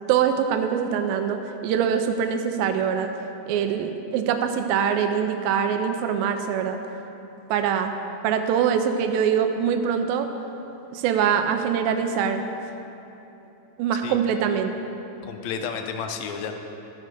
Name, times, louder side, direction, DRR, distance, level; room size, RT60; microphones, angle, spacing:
voice 1, 0.1-3.1 3.5-6.8 7.5-7.9 8.2-10.3 10.9-12.4 13.8-14.7, right 7 dB, 90° right, 7 dB, 2.3 m, -23 dB
voice 2, 15.2-16.5, left 6 dB, 80° left, 5 dB, 1.6 m, -31 dB
14.0 x 5.2 x 6.5 m, 3.0 s
omnidirectional pair, 4.0 m